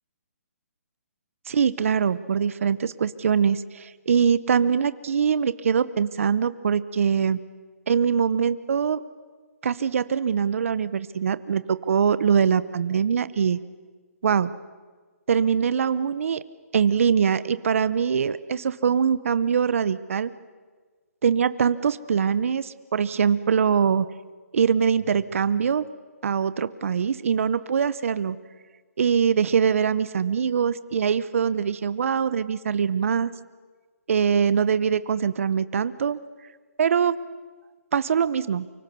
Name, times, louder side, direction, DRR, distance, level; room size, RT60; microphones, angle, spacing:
voice 1, 1.5-7.4 7.9-9.0 9.6-13.6 14.2-14.5 15.3-16.4 16.7-20.3 21.2-24.1 24.5-25.8 26.2-28.4 29.0-33.3 34.1-36.2 36.8-37.2 37.9-38.6, right 7 dB, 60° right, 16 dB, 0.8 m, -23 dB
25.0 x 24.5 x 6.8 m, 1.5 s
hypercardioid pair, 165°, 8 cm